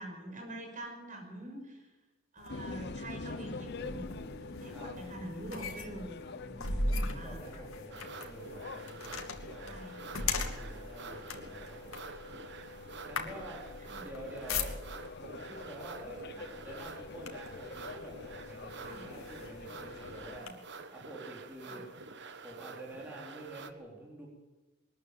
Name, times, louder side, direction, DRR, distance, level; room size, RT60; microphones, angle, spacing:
voice 1, 0.0-1.9 2.3-7.6 9.6-10.2 13.8-14.0 18.8-19.0 20.4-20.5 21.6-21.8, right 1 dB, 40° right, 3 dB, 6.5 m, -45 dB
sound 1, 2.4-15.2 16.0-16.3 16.6-17.7 18.3-18.4 18.8-20.5, left 3 dB, 90° left, 2.5 m, -39 dB
sound 2, 2.5-20.4, left 3 dB, 55° left, 0.8 m, -46 dB
voice 2, 6.3-9.8 10.2-12.0 13.1-13.6 14.0-14.7 15.2-20.5 20.9-21.8 22.4-24.3, right 1 dB, 10° right, -4 dB, 4.2 m, -48 dB
sound 3, 7.9-23.7, right 4 dB, 60° right, 1.5 m, -48 dB
22.0 x 14.0 x 9.3 m, 1.1 s
head